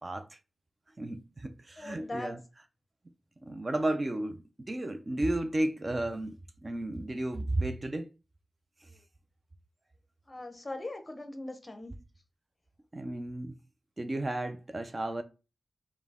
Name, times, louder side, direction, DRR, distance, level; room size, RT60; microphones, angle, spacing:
voice 1, 1.0-2.4 3.4-4.4 4.7-6.4 6.6-8.1 12.9-13.6 14.0-15.2, right 1 dB, 25° right, 0.3 m, -33 dB
voice 2, 1.8-2.3 10.3-11.9, left 2 dB, 25° left, 0.7 m, -40 dB
5.3 x 2.0 x 3.5 m
wide cardioid pair, 140°, 0 cm